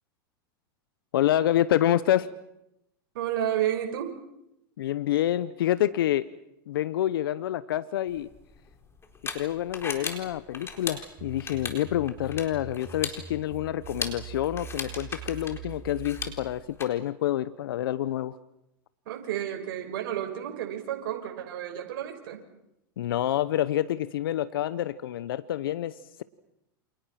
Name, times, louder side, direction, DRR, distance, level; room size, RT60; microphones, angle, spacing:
voice 1, 1.1-2.3 4.8-6.3 6.7-8.3 9.3-18.4 23.0-26.2, left 12 dB, 75° left, 16 dB, 0.9 m, -27 dB
voice 2, 3.1-4.1 19.1-22.4, right 11 dB, 65° right, 3 dB, 6.0 m, -31 dB
sound 1, 8.1-16.8, left 4 dB, 20° left, 4.1 m, -38 dB
sound 2, 11.2-16.5, right 7 dB, 45° right, 4.7 m, -43 dB
29.0 x 27.5 x 5.9 m, 0.84 s
hypercardioid pair, 100°, 12 cm